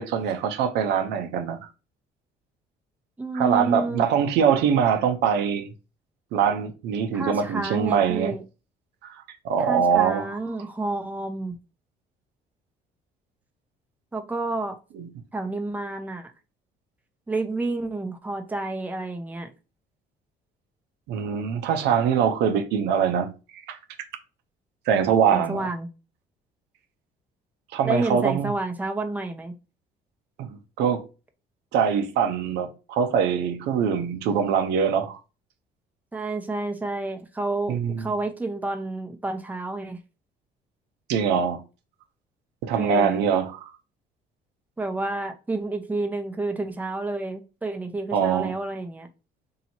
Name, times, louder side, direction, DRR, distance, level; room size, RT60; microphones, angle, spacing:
voice 1, 0.0-1.7 3.3-5.7 6.3-8.3 9.0-10.4 15.0-15.1 21.1-23.8 24.9-25.7 27.7-28.5 30.4-31.0 31.7-35.2 37.7-38.1 41.1-41.6 42.6-43.7 48.1-48.5, right 7 dB, 85° right, 0.6 m, -23 dB
voice 2, 3.2-4.0 7.1-8.4 9.6-11.6 14.1-14.8 15.3-16.3 17.3-19.5 25.3-25.9 27.8-29.5 36.1-40.0 42.7-43.2 44.8-49.1, right 2 dB, 10° right, 0.6 m, -30 dB
2.8 x 2.8 x 4.3 m
cardioid pair, 110°, 17 cm